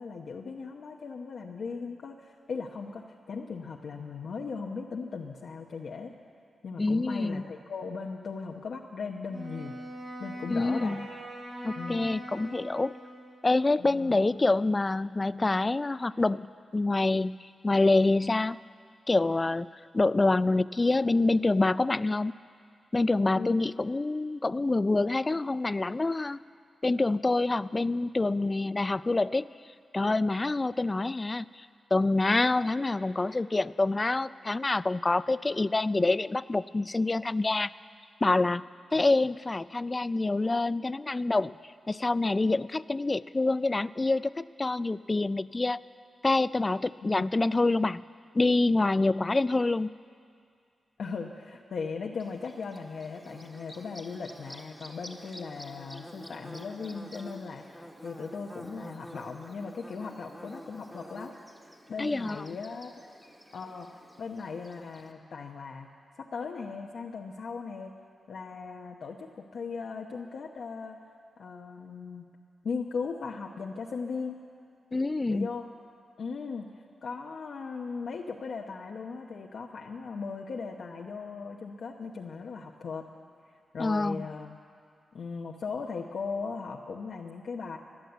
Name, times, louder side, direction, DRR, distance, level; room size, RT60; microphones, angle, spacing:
voice 1, 0.0-6.1 6.6-9.8 10.2-11.0 11.8-12.1 13.8-14.2 23.3-23.6 47.1-47.2 51.0-61.3 61.9-62.9 63.5-65.9 66.2-67.9 68.3-71.0 71.4-72.3 72.6-74.4 75.3-75.7 76.2-76.7 77.0-83.1 83.7-84.6 85.1-87.8, left 5 dB, 70° left, 0 dB, 0.9 m, -38 dB
voice 2, 6.8-7.4 10.5-11.1 11.6-12.9 13.4-16.5 16.7-17.4 17.6-18.6 19.1-19.7 19.9-22.3 22.9-26.4 26.8-29.5 29.9-31.7 31.9-37.7 38.2-38.6 38.9-41.5 41.9-45.8 46.2-48.0 48.3-49.9 62.0-62.4 74.9-75.5 83.8-84.3, left 2 dB, 30° left, 17 dB, 0.3 m, -26 dB
Wind instrument woodwind instrument, 9.3-13.5, equal, 50° right, 5.5 m, -41 dB
Bird / Buzz, 52.2-65.1, equal, ahead, 1.5 m, -48 dB
16.0 x 11.0 x 8.0 m, 2.3 s
cardioid pair, 65°, 0 cm